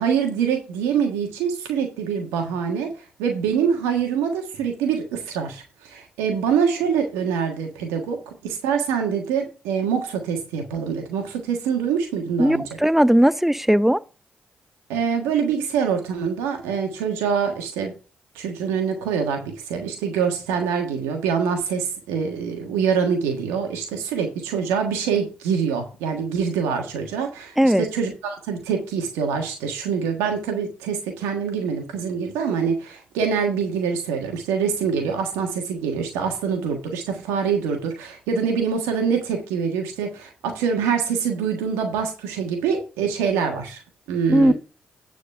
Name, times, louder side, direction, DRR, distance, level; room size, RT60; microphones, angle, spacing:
voice 1, 0.0-2.9 3.2-8.2 8.4-12.7 14.9-17.9 18.3-43.8 44.1-44.5, right 6 dB, 90° right, 1.4 m, -25 dB
voice 2, 12.4-14.0 27.6-27.9 44.3-44.5, equal, 5° right, 0.5 m, -17 dB
9.9 x 4.2 x 6.4 m
hypercardioid pair, 45°, 4 cm